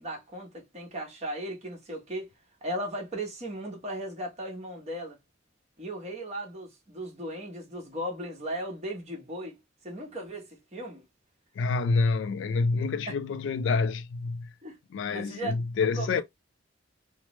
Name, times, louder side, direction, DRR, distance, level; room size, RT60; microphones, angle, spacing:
voice 1, 0.0-2.3 2.6-5.2 5.8-11.0 13.1-13.2 14.6-14.8 15.1-15.5 15.8-16.2, right 1 dB, 35° right, 1.1 m, -37 dB
voice 2, 11.6-14.5 14.9-16.2, left 4 dB, 70° left, 0.3 m, -27 dB
3.1 x 2.0 x 3.0 m
head